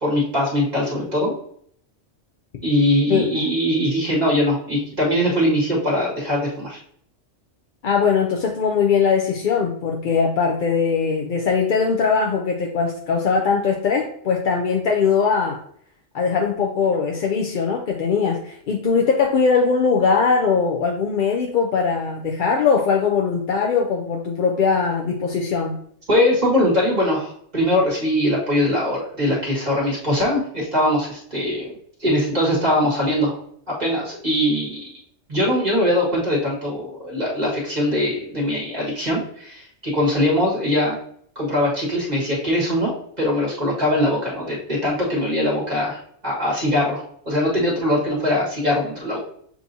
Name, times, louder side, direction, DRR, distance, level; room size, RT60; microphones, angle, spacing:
voice 1, 0.0-1.3 2.6-6.8 26.1-31.7 32.0-33.4 33.7-34.9 35.3-41.0 41.4-42.9 43.2-49.2, left 1 dB, 35° right, -5 dB, 1.8 m, -21 dB
voice 2, 3.1-3.5 7.8-15.6 16.1-25.8, left 5 dB, 55° left, 0 dB, 0.6 m, -20 dB
6.9 x 2.8 x 2.7 m, 0.64 s
omnidirectional pair, 1.2 m